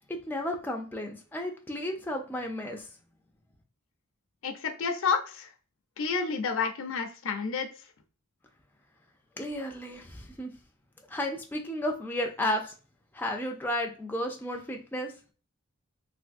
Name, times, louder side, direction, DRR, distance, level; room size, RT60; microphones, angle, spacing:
voice 1, 0.3-2.9 9.4-10.5 11.1-12.7 13.1-15.1, left 1 dB, 10° left, 2 dB, 0.4 m, -33 dB
voice 2, 4.4-5.5 6.0-7.9, left 5 dB, 65° left, 6 dB, 0.6 m, -30 dB
3.5 x 2.6 x 2.5 m, 0.36 s
head